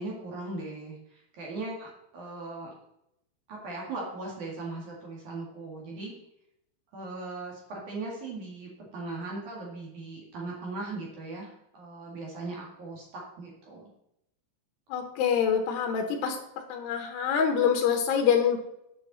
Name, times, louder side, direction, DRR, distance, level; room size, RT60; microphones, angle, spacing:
voice 1, 0.0-2.7 3.5-6.1 6.9-13.9, right 3 dB, 55° right, -3 dB, 2.4 m, -39 dB
voice 2, 14.9-16.4 16.7-18.6, left 7 dB, 85° left, 5 dB, 2.4 m, -25 dB
9.5 x 6.5 x 4.0 m, 0.81 s
omnidirectional pair, 5.9 m